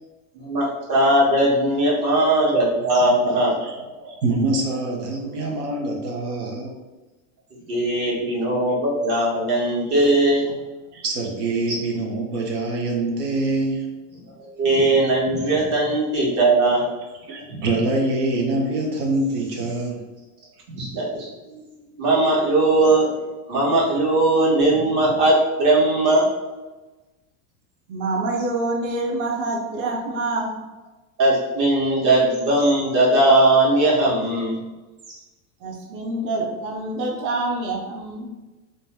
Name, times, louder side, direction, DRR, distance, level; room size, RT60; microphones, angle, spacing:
voice 1, 0.3-3.5 7.7-10.5 11.7-11.8 14.4-16.8 17.5-17.6 20.7-21.5 22.0-23.1 23.5-26.2 31.2-34.6 35.1-35.2, right 2 dB, 55° right, -4 dB, 1.3 m, -19 dB
voice 2, 3.0-6.7 8.0-8.1 10.4-10.5 10.9-13.9 17.3-20.0, right 2 dB, 90° right, 0 dB, 0.8 m, -25 dB
voice 3, 27.9-30.5 35.6-38.3, right 2 dB, 30° right, 0 dB, 0.4 m, -26 dB
2.6 x 2.1 x 3.3 m, 1.1 s
supercardioid pair, 110°, 45 cm